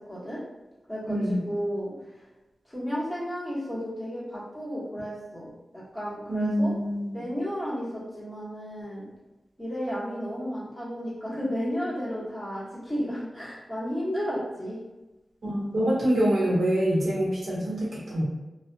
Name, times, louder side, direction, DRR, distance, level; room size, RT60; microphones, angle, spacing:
voice 1, 0.1-0.4 0.9-1.9 2.6-6.7 7.1-9.1 9.6-14.8, equal, ahead, -10 dB, 1.4 m, -33 dB
voice 2, 1.1-1.4 6.3-7.1 15.4-18.2, equal, 75° right, -6 dB, 1.0 m, -25 dB
2.6 x 2.2 x 2.6 m, 1.1 s
wide cardioid pair, 80°, 0 cm